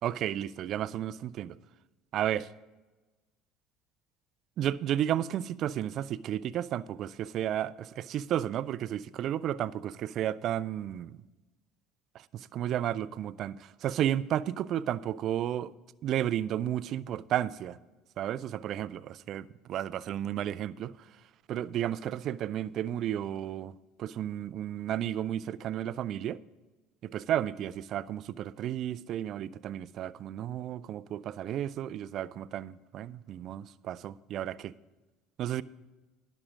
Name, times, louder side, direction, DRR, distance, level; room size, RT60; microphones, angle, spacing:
voice 1, 0.0-1.6 2.1-2.5 4.6-11.2 12.1-15.7 16.0-17.8 18.2-21.1 21.5-26.4 27.0-34.7 35.4-35.6, right 11 dB, 55° right, 0.4 m, -33 dB
11.5 x 6.3 x 6.1 m
hypercardioid pair, 80°, 0 cm